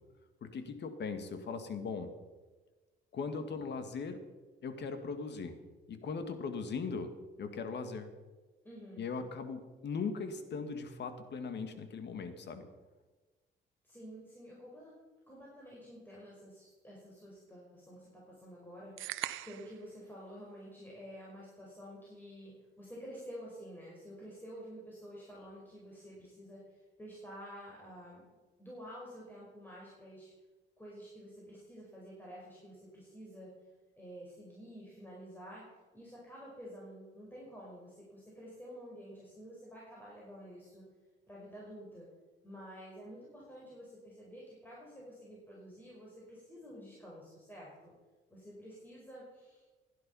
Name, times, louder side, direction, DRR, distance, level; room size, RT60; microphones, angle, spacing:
voice 1, 0.4-2.1 3.1-4.2 4.6-5.6 5.9-7.1 7.4-8.1 9.0-12.7, left 5 dB, 60° left, 8 dB, 1.9 m, -39 dB
voice 2, 8.6-9.1 13.8-15.0 15.3-28.3 28.6-30.3 30.8-33.5 34.0-35.6 35.9-40.9 41.3-42.1 42.4-47.9 48.3-49.7, equal, 10° left, -5 dB, 5.1 m, -50 dB
sound 1, 19.0-19.8, right 15 dB, 85° right, 0.7 m, -40 dB
16.0 x 10.5 x 5.6 m, 1.3 s
cardioid pair, 90°, 20 cm